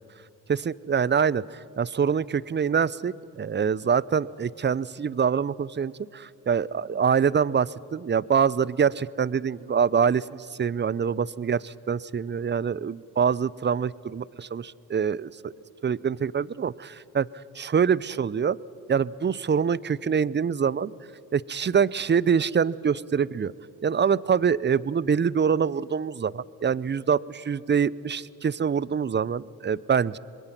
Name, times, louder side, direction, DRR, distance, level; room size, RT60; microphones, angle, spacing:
voice 1, 0.5-15.5 15.8-17.3 17.6-18.6 18.9-20.9 21.3-23.5 23.8-30.2, right 7 dB, 25° right, 21 dB, 0.6 m, -25 dB
26.0 x 21.0 x 6.0 m, 2.9 s
supercardioid pair, 50°, 40 cm